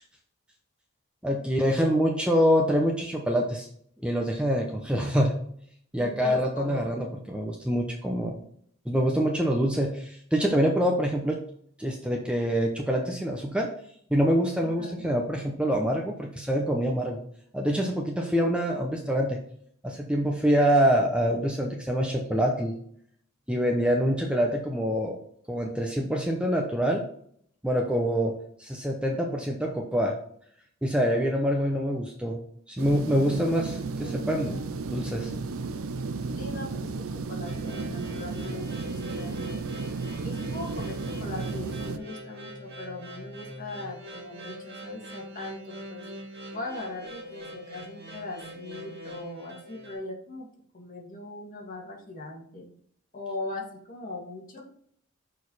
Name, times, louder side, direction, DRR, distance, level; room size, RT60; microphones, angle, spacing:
voice 1, 1.2-3.7 4.0-5.4 5.9-8.4 8.9-11.4 11.8-13.7 14.1-17.2 17.5-19.4 19.8-22.7 23.5-25.2 25.5-27.0 27.6-28.3 28.6-30.1 30.8-32.4 32.7-34.6 34.9-35.3, equal, 5° right, 1 dB, 0.7 m, -25 dB
voice 2, 6.0-7.0 14.6-15.0 34.0-34.7 36.4-39.8 40.2-46.0 46.5-50.5 50.7-52.7 53.1-54.6, left 2 dB, 40° left, -1 dB, 2.0 m, -40 dB
sound 1, 32.8-42.0, right 4 dB, 80° right, 0.6 m, -34 dB
sound 2, 37.5-50.0, equal, 50° right, 2.2 m, -43 dB
6.5 x 4.7 x 4.1 m, 0.64 s
head